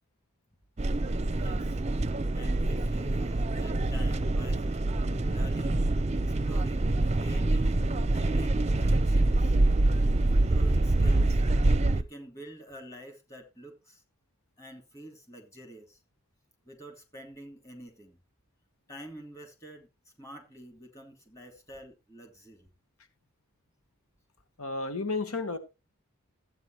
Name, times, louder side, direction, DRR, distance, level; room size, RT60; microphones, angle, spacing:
sound 1, 0.8-12.0, right 2 dB, 30° right, 0.6 m, -25 dB
voice 1, 1.3-1.8 2.3-4.9 5.2-5.8 6.1-9.6 10.2-11.4 11.9-14.0 14.6-16.0 16.6-18.2 18.9-22.7, right 1 dB, 15° left, 2.9 m, -48 dB
voice 2, 24.6-25.6, left 3 dB, 85° left, 1.4 m, -32 dB
13.5 x 8.8 x 3.1 m
head